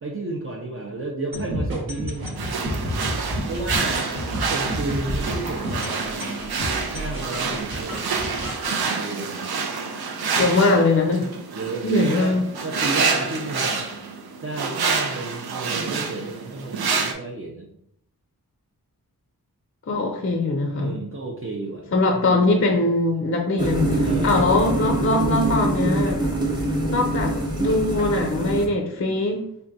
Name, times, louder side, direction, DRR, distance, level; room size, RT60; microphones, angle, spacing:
voice 1, 0.0-2.4 3.5-4.1 4.5-6.5 6.9-8.3 8.8-9.5 11.5-12.3 12.6-13.9 14.4-17.7 20.8-21.9 22.2-22.4 24.0-24.4, right 2 dB, 35° right, -2 dB, 0.5 m, -32 dB
sound 1, 1.3-8.8, equal, 65° right, 1.0 m, -30 dB
sound 2, 2.4-17.1, right 5 dB, 90° right, 0.5 m, -28 dB
voice 2, 10.3-11.3 11.8-12.5 19.9-21.0 21.9-26.2 26.9-29.5, left 2 dB, 40° left, 3 dB, 0.5 m, -21 dB
sound 3, 23.6-28.7, right 1 dB, 10° right, 0.8 m, -24 dB
3.7 x 2.2 x 2.6 m, 0.74 s
wide cardioid pair, 50°, 36 cm